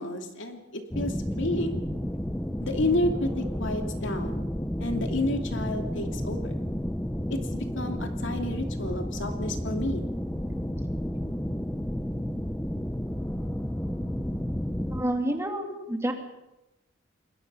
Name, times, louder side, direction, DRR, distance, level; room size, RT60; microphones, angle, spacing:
voice 1, 0.0-1.8 2.6-4.4 4.8-6.6 7.3-10.0, left 1 dB, 60° left, 4 dB, 2.8 m, -31 dB
sound 1, 0.9-15.0, equal, 5° left, 0.7 m, -31 dB
voice 2, 14.9-16.1, right 1 dB, 15° right, 3 dB, 2.6 m, -29 dB
28.5 x 21.5 x 5.6 m, 0.95 s
head